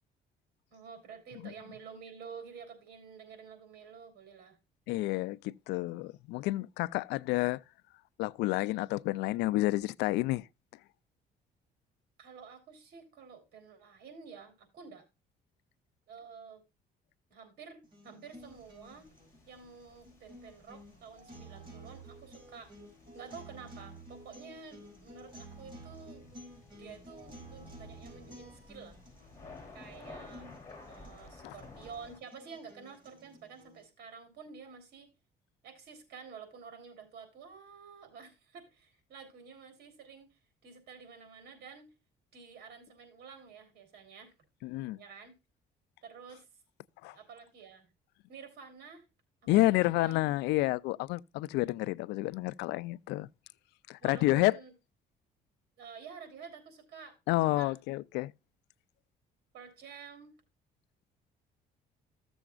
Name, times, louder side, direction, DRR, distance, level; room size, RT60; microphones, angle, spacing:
voice 1, 0.7-4.6 12.2-15.0 16.1-16.6 17.3-19.1 19.5-22.7 23.1-26.3 26.8-29.0 29.7-30.5 30.9-35.1 35.6-41.9 42.3-44.3 45.0-45.3 46.0-46.5 47.1-47.9 48.3-49.1 49.5-50.1 54.0-54.7 55.8-57.2 57.5-57.7 59.5-60.4, right 6 dB, 70° right, 3.7 m, -50 dB
voice 2, 4.9-7.6 8.2-10.5 31.4-31.5 44.6-45.0 47.0-47.2 49.5-53.3 53.9-54.5 57.3-58.3, left 18 dB, 90° left, 0.4 m, -29 dB
sound 1, 17.8-33.8, right 1 dB, 30° right, 5.9 m, -53 dB
sound 2, 18.3-32.2, left 3 dB, 15° left, 3.5 m, -55 dB
15.0 x 7.0 x 2.4 m
cardioid pair, 110°, 17 cm